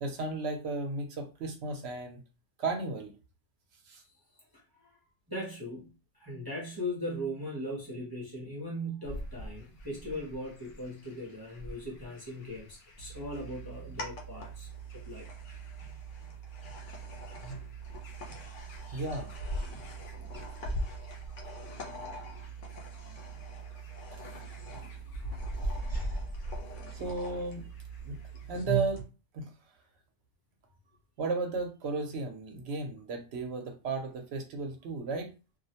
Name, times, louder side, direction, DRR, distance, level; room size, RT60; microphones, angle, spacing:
voice 1, 0.0-2.2 2.6-3.1 3.9-4.0 18.9-19.3 19.6-19.7 26.9-27.7 28.0-28.2 28.5-29.0 29.3-29.5 31.2-35.3, right 3 dB, 70° right, 4 dB, 0.8 m, -34 dB
voice 2, 5.3-5.9 6.1-15.3 18.9-19.0 20.2-20.4 24.6-24.9 25.9-26.2, equal, 25° right, -5 dB, 0.6 m, -39 dB
sound 1, 9.0-28.6, equal, 65° left, 0.7 m, -43 dB
sound 2, 13.0-29.0, right 4 dB, 80° left, 1.0 m, -42 dB
2.3 x 2.0 x 2.7 m, 0.32 s
omnidirectional pair, 1.2 m